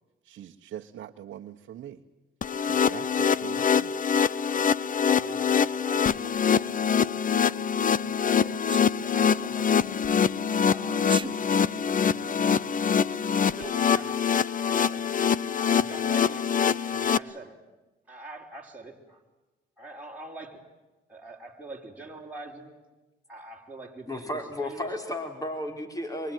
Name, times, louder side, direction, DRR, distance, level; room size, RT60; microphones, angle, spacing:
voice 1, 0.2-2.0 2.6-4.0, right 11 dB, 70° right, 3 dB, 1.3 m, -42 dB
sound 1, 2.4-17.2, left 7 dB, 40° left, 0.8 m, -24 dB
voice 2, 5.1-8.6 9.0-10.2 10.5-15.1 15.6-17.6 18.1-19.2 19.8-20.6 21.1-22.7 23.3-25.0, right 2 dB, 5° right, -2 dB, 4.7 m, -45 dB
Sneeze, 8.7-8.9 11.0-11.3, right 4 dB, 25° right, 1.1 m, -34 dB
voice 3, 24.1-26.3, left 1 dB, 15° left, 5 dB, 4.6 m, -33 dB
25.0 x 23.5 x 9.3 m, 1.1 s
cardioid pair, 90°, 20 cm